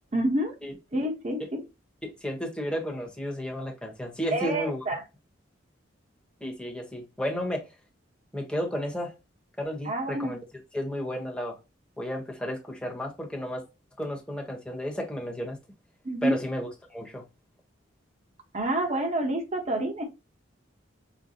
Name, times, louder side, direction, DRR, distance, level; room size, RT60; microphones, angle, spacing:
voice 1, 0.1-0.5 0.9-1.6 4.3-5.0 9.8-10.3 16.0-16.4 18.5-20.0, right 1 dB, 35° right, 1.0 m, -28 dB
voice 2, 2.0-4.8 6.4-7.7 8.3-9.1 9.6-10.4 10.7-11.6 12.0-13.6 14.0-15.6 16.2-17.2, equal, 5° left, 1.0 m, -33 dB
5.1 x 2.2 x 2.7 m
head